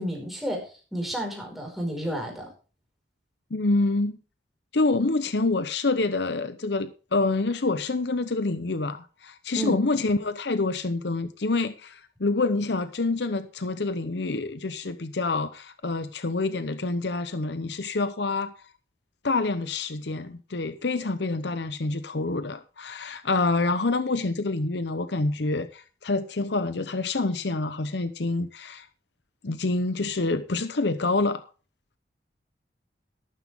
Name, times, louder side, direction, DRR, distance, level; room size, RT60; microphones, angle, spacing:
voice 1, 0.0-2.5 9.5-9.8, equal, ahead, 5.1 m, -31 dB
voice 2, 3.5-4.2 4.7-18.5 19.2-28.9 29.4-31.5, left 3 dB, 65° left, 0.8 m, -27 dB
13.5 x 12.5 x 3.6 m
head